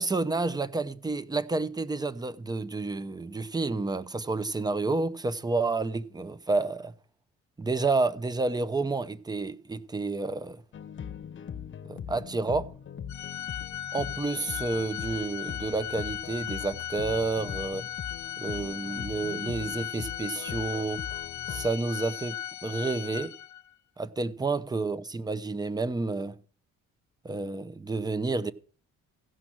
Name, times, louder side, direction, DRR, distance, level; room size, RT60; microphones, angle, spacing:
voice 1, 0.0-6.9 7.6-10.6 11.8-12.7 13.9-17.9 18.4-21.0 21.5-23.3 24.0-26.3 27.2-28.5, right 3 dB, 15° right, 0.7 m, -30 dB
sound 1, 10.7-21.7, left 8 dB, 40° left, 0.9 m, -41 dB
Organ, 13.1-23.7, left 11 dB, 70° left, 0.8 m, -37 dB
15.5 x 6.2 x 6.1 m
cardioid pair, 90°, 30 cm